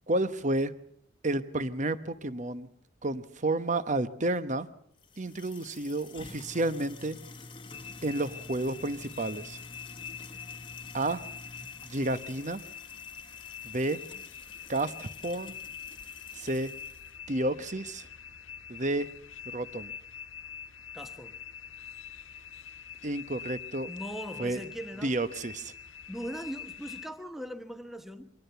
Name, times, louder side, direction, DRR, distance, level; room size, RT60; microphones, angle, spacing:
voice 1, 0.1-0.7 1.2-2.7 3.0-4.7 5.2-7.2 8.0-9.6 10.9-11.2 11.8-12.6 13.6-14.0 14.7-15.5 16.3-16.7 17.3-18.1 18.7-19.1 19.5-19.9 23.0-23.9 24.4-24.6 25.0-25.7, right 2 dB, 40° right, 1.0 m, -31 dB
sound 1, 5.0-17.1, left 3 dB, 25° left, 1.3 m, -49 dB
sound 2, 7.7-27.1, left 8 dB, 85° left, 0.9 m, -45 dB
voice 2, 20.9-21.4 23.9-25.2 26.1-28.3, equal, ahead, 1.0 m, -40 dB
24.5 x 18.5 x 6.9 m
head